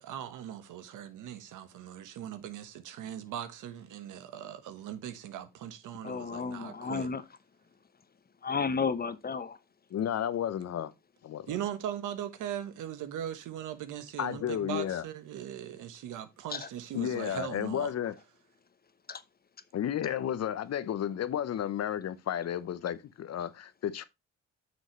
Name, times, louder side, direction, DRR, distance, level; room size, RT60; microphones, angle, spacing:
voice 1, 0.0-7.1 11.5-17.9, right 10 dB, 85° right, 1.3 m, -39 dB
voice 2, 6.0-7.2 8.4-9.6 16.5-16.6 19.1-19.2, left 5 dB, 30° left, 0.9 m, -32 dB
voice 3, 9.9-10.9 11.2-11.5 14.2-15.0 16.9-18.1 19.7-24.0, left 10 dB, 55° left, 0.9 m, -32 dB
9.3 x 6.3 x 3.1 m
cardioid pair, 90°, 30 cm